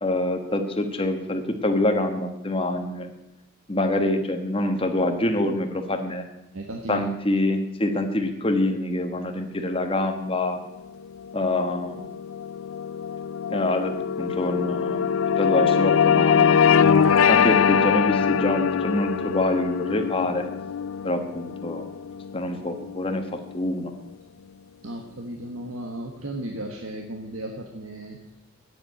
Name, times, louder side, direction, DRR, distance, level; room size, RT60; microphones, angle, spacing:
voice 1, 0.0-3.1 3.7-6.2 6.9-10.6 11.3-12.0 13.5-13.9 14.2-15.0 15.4-16.6 17.3-20.5 21.0-21.9 22.3-23.9, left 1 dB, 25° left, 5 dB, 1.3 m, -25 dB
voice 2, 6.5-7.0 24.8-28.2, right 1 dB, 90° right, 2 dB, 1.5 m, -35 dB
sound 1, 11.0-23.6, left 7 dB, 85° left, 0.5 m, -23 dB
9.6 x 7.9 x 9.3 m, 0.94 s
head